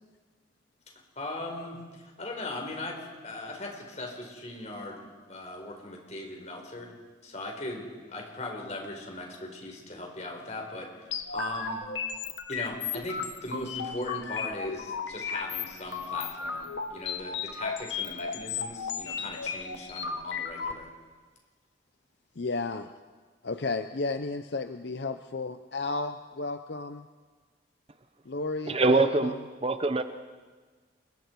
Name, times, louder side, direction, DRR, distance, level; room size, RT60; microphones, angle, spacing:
voice 1, 1.2-6.9 7.2-9.3 9.5-11.8 12.5-20.9, left 2 dB, 40° left, 1 dB, 4.7 m, -39 dB
sound 1, 11.1-20.7, left 6 dB, 80° left, 1.6 m, -35 dB
voice 2, 22.4-22.9 23.4-27.1 28.3-29.4, left 3 dB, 65° left, 8 dB, 0.7 m, -33 dB
voice 3, 28.7-29.3 29.6-30.0, right 3 dB, 30° right, 10 dB, 0.8 m, -23 dB
30.0 x 22.0 x 4.7 m, 1.4 s
head